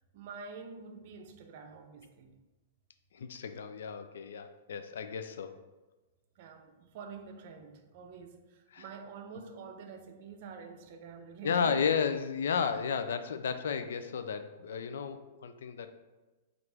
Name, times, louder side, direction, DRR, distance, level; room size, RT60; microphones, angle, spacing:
voice 1, 0.1-2.4 6.4-11.9, right 5 dB, 50° right, 0.5 m, -47 dB
voice 2, 3.1-5.6 8.7-8.8 11.4-15.9, left 6 dB, 80° left, 0.4 m, -33 dB
6.0 x 2.5 x 3.3 m
hypercardioid pair, 150°, 0 cm